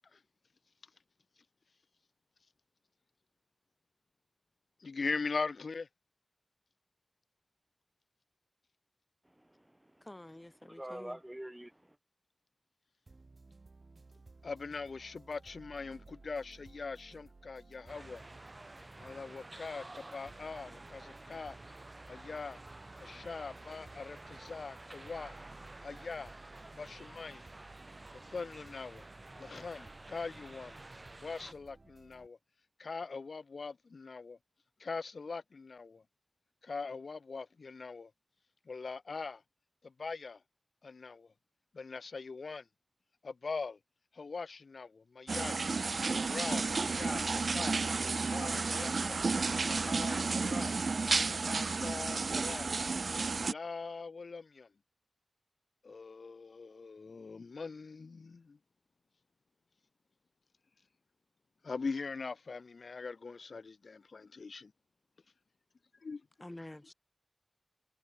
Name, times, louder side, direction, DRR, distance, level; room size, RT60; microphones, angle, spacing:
voice 1, 4.8-5.9 14.4-18.2 19.0-21.6 22.1-22.6 23.0-25.4 25.8-26.4 26.7-27.4 28.1-29.0 29.4-30.8 31.2-32.4 32.8-34.4 34.8-36.0 36.6-38.1 38.6-39.4 39.8-40.4 40.8-41.3 41.7-42.7 43.2-43.8 44.1-45.6 46.2-47.8 48.3-49.2 49.7-50.7 51.3-52.7 53.4-54.7 55.8-58.6 61.6-64.7 66.0-66.2, left 4 dB, 85° left, 1.4 m, -41 dB
voice 2, 9.2-10.1 10.7-12.0, right 1 dB, 10° right, 1.2 m, -46 dB
voice 3, 10.0-11.2 66.4-66.9, left 1 dB, 20° left, 1.7 m, -48 dB
sound 1, 13.1-32.3, right 3 dB, 50° right, 3.7 m, -57 dB
sound 2, 17.9-31.5, right 2 dB, 35° right, 1.8 m, -51 dB
sound 3, 45.3-53.5, right 4 dB, 75° right, 0.4 m, -32 dB
wide cardioid pair, 80°, 0 cm